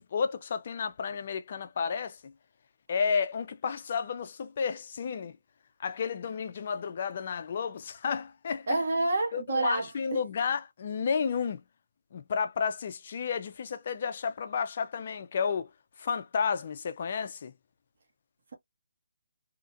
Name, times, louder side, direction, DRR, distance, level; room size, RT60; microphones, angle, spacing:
voice 1, 0.0-2.3 2.9-5.4 5.8-8.8 9.3-11.6 12.1-15.7 16.0-17.5, left 6 dB, 45° left, 0.6 m, -32 dB
voice 2, 8.7-10.2, right 2 dB, 50° right, 0.9 m, -28 dB
2.9 x 2.5 x 2.5 m
figure-of-eight pair, 150°, 0 cm